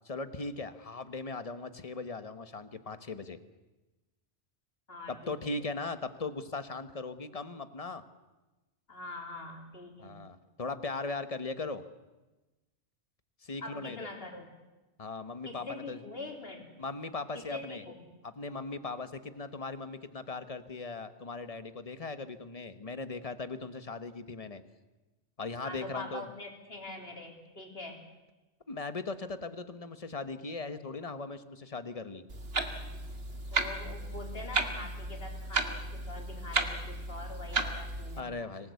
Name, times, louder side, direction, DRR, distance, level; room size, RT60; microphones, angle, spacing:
voice 1, 0.0-3.4 5.1-8.0 10.0-11.8 13.4-14.1 15.0-16.0 16.8-17.8 18.2-24.6 25.4-26.3 28.7-32.2 38.2-38.7, left 3 dB, 30° left, 11 dB, 1.2 m, -39 dB
voice 2, 4.9-5.5 8.9-10.2 13.6-14.5 15.4-16.7 17.3-18.1 25.6-28.0 33.5-38.5, left 2 dB, 55° left, 2 dB, 3.5 m, -44 dB
Clock, 32.3-38.2, right 3 dB, 60° right, 1.9 m, -34 dB
25.5 x 18.0 x 8.3 m, 1.1 s
omnidirectional pair, 1.2 m